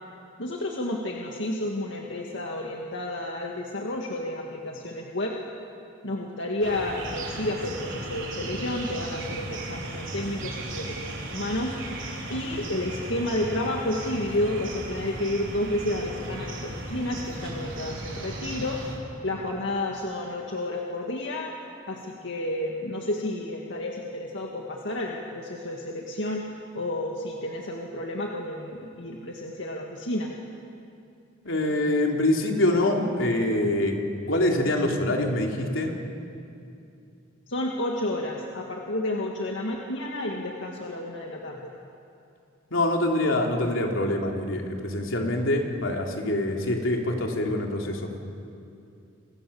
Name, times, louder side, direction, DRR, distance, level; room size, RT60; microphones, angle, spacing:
voice 1, 0.4-5.4 6.0-18.8 19.2-21.5 21.9-30.3 37.5-41.7, left 1 dB, 65° left, 0 dB, 2.2 m, -31 dB
sound 1, 6.6-19.0, right 1 dB, 70° right, 4.7 m, -36 dB
voice 2, 31.4-34.0 34.3-35.9 42.7-48.0, left 1 dB, 85° left, 1 dB, 3.6 m, -25 dB
29.0 x 24.0 x 7.2 m, 2.6 s
head